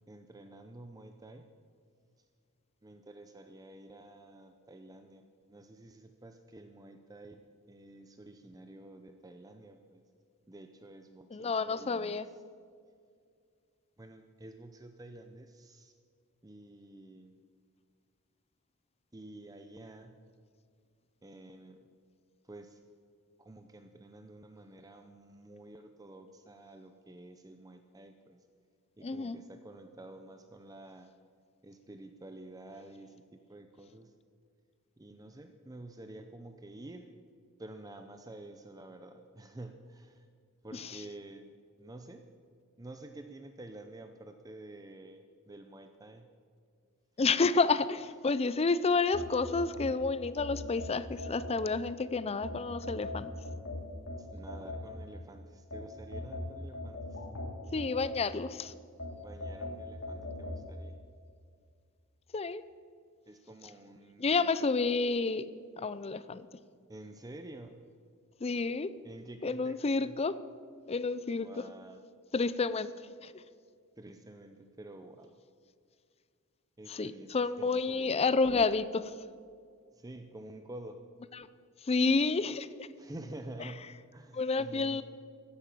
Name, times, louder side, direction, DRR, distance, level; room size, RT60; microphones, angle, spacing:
voice 1, 0.1-1.5 2.8-7.4 7.7-10.0 10.5-12.2 14.0-15.9 16.4-17.4 19.1-20.2 21.2-21.8 22.5-22.8 23.4-28.4 29.0-31.1 31.6-34.1 35.0-37.1 37.6-40.2 40.6-41.5 41.8-42.3 42.8-46.3 54.2-57.0 59.2-61.0 63.3-64.8 66.9-67.8 69.0-70.2 71.3-72.0 74.0-75.3 76.8-77.3 77.6-78.2 80.0-81.0 83.0-85.0, right 1 dB, 15° right, 7 dB, 0.6 m, -49 dB
voice 2, 11.3-12.3 29.0-29.4 40.7-41.0 47.2-53.3 57.7-58.7 62.3-62.6 64.2-65.5 65.8-66.5 68.4-68.9 69.4-70.4 70.9-71.7 72.3-72.9 73.2-73.3 76.9-79.1 81.3-81.5 81.8-82.9 83.6-83.7 84.3-85.0, left 4 dB, 25° left, 15 dB, 0.5 m, -30 dB
sound 1, 49.1-51.9 52.4-55.2 55.7-58.5 59.0-60.6, left 1 dB, 60° left, 2.6 m, -40 dB
15.0 x 9.8 x 7.4 m, 2.2 s
head